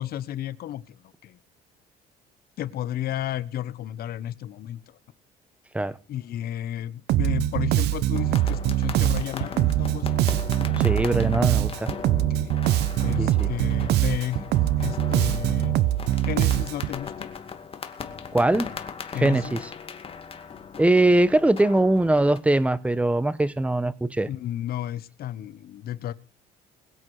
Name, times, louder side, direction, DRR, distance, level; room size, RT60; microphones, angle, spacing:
voice 1, 0.0-1.4 2.6-5.0 6.1-10.2 12.1-12.5 13.0-14.5 14.8-15.7 16.2-17.3 19.1-19.6 24.2-26.1, left 12 dB, 65° left, 1.1 m, -33 dB
Bass guitar, 7.1-17.0, right 13 dB, 80° right, 0.9 m, -23 dB
sound 1, 8.1-22.4, left 6 dB, 35° left, 2.2 m, -38 dB
voice 2, 10.8-11.9 13.2-13.5 18.3-18.7 19.1-19.6 20.8-24.3, right 1 dB, 10° right, 1.1 m, -21 dB
22.0 x 8.5 x 4.8 m
cardioid pair, 110°, 17 cm